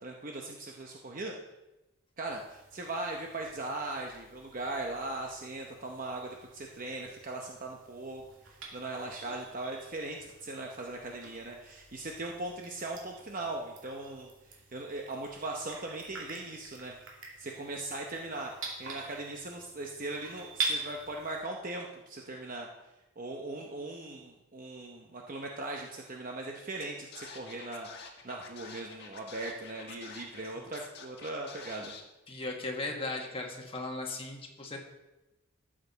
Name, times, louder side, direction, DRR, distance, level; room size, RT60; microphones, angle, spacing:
voice 1, 0.0-1.3 2.2-17.0 17.4-22.7 23.2-27.9 28.2-31.9, right 2 dB, 40° right, 1 dB, 0.8 m, -39 dB
sound 1, 2.2-21.4, right 4 dB, 70° right, 2.5 m, -45 dB
Scratching (performance technique), 26.8-26.9 27.1-30.4 30.7-32.0, left 5 dB, 50° left, 1.4 m, -47 dB
voice 2, 32.3-34.8, left 2 dB, 25° left, 1 dB, 1.4 m, -37 dB
12.5 x 7.6 x 4.0 m, 1.0 s
head